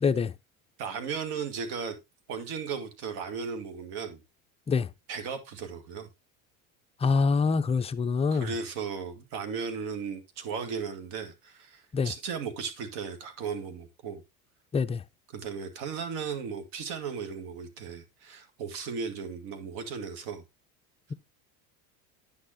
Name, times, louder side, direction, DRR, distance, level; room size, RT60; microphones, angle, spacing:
voice 1, 0.8-2.0 2.3-4.2 5.1-6.1 8.3-14.2 15.3-20.4, right 6 dB, 65° right, 2.0 m, -36 dB
voice 2, 7.0-8.5 11.9-12.1 14.7-15.0, left 5 dB, 15° left, 0.4 m, -25 dB
9.6 x 6.7 x 2.9 m
supercardioid pair, 95°, 43 cm